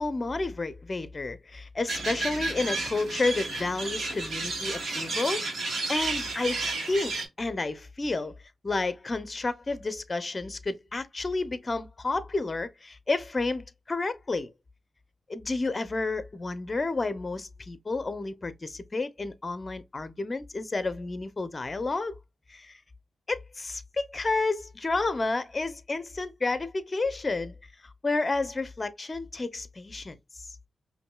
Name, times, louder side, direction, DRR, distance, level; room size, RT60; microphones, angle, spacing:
voice 1, 0.0-5.4 5.9-8.3 8.6-14.5 15.3-22.2 22.5-22.8 23.3-27.5 27.8-30.2, left 3 dB, 35° left, 0.6 m, -31 dB
sound 1, 1.9-7.2, right 3 dB, 70° right, 1.4 m, -32 dB
5.2 x 2.6 x 2.2 m
cardioid pair, 85°, 0 cm